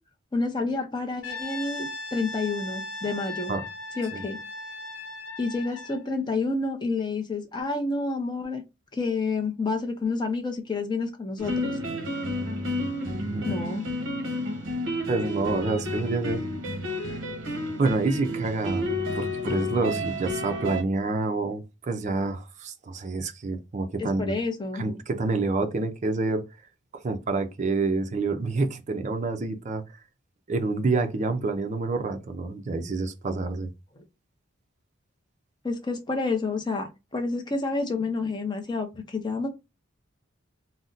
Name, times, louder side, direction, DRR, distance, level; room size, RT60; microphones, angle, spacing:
voice 1, 0.3-3.5 4.0-4.4 5.4-8.6 8.9-11.7 13.5-13.9 24.0-24.8 35.6-39.5, left 3 dB, 20° left, 0.5 m, -29 dB
Brass instrument, 1.2-6.1, left 2 dB, 85° left, 1.0 m, -37 dB
sound 1, 11.4-20.8, left 1 dB, 60° right, 0.8 m, -30 dB
voice 2, 15.1-16.4 17.1-17.2 17.8-18.9 19.1-24.3 24.7-26.4 26.9-29.8 30.5-33.7, right 3 dB, 35° right, 0.4 m, -28 dB
2.6 x 2.1 x 3.7 m
head